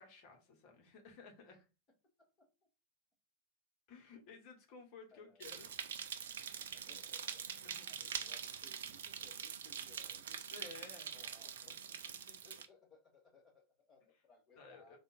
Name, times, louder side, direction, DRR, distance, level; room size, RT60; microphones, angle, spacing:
voice 1, 0.0-1.6 3.9-5.7 7.6-8.0 10.5-11.1 14.6-15.0, left 4 dB, 45° left, 1.3 m, -55 dB
voice 2, 2.2-2.5 5.1-5.4 6.7-10.5 11.1-15.0, left 3 dB, 30° left, 2.0 m, -65 dB
sound 1, 5.4-12.7, right 8 dB, 60° right, 0.4 m, -44 dB
3.6 x 2.4 x 4.1 m
figure-of-eight pair, 90°, 0 cm